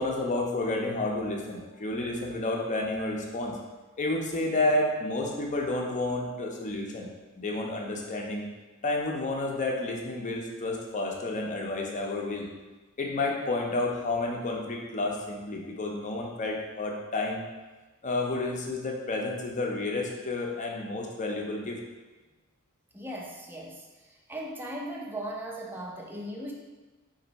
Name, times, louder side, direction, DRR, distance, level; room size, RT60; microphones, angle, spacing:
voice 1, 0.0-3.6 4.0-7.1 7.4-8.5 8.8-12.5 13.0-17.4 18.0-21.8, left 2 dB, 35° left, 0 dB, 0.6 m, -30 dB
voice 2, 22.9-26.5, right 1 dB, 10° right, -1 dB, 0.5 m, -38 dB
4.2 x 2.6 x 4.0 m, 1.2 s
head